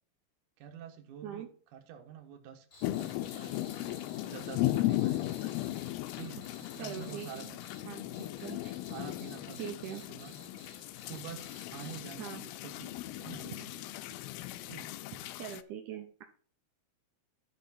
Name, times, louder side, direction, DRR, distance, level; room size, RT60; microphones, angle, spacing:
voice 1, 0.6-5.3 6.1-6.4 6.8-7.7 8.1-8.3 8.9-10.6 11.1-13.9 14.7-14.9, right 8 dB, 65° right, 4 dB, 2.2 m, -48 dB
Cricket, 2.7-12.1, left 2 dB, 25° left, 5.6 m, -56 dB
sound 1, 2.8-15.6, left 16 dB, 85° left, 2.3 m, -37 dB
voice 2, 6.8-7.5 7.8-8.7 9.6-10.0 12.2-12.4 15.4-16.2, right 9 dB, 85° right, 3 dB, 1.7 m, -42 dB
11.5 x 5.6 x 4.2 m, 0.41 s
omnidirectional pair, 4.9 m